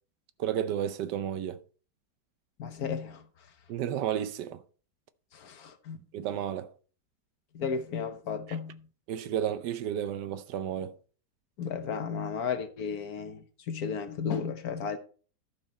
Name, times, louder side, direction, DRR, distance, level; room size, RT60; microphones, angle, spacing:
voice 1, 0.4-1.6 3.7-4.6 6.1-6.7 9.1-11.0, right 10 dB, 75° right, 1.3 m, -32 dB
voice 2, 2.6-3.2 5.3-6.0 7.5-8.9 11.6-15.0, left 6 dB, 60° left, 1.3 m, -34 dB
12.5 x 5.8 x 4.2 m
omnidirectional pair, 1.9 m